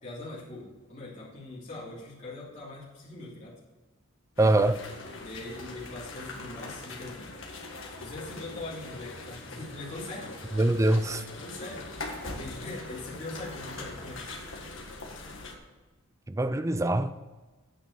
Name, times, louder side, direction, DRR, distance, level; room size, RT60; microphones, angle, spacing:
voice 1, 0.0-3.5 5.1-7.2 8.0-10.3 11.4-11.8 12.3-14.4, left 2 dB, 35° left, 3.0 m, -41 dB
sound 1, 4.4-15.6, left 2 dB, 60° left, 1.7 m, -42 dB
voice 2, 4.4-4.8 10.5-11.2 16.3-17.1, right 1 dB, 15° right, 0.4 m, -23 dB
9.1 x 6.6 x 7.0 m
head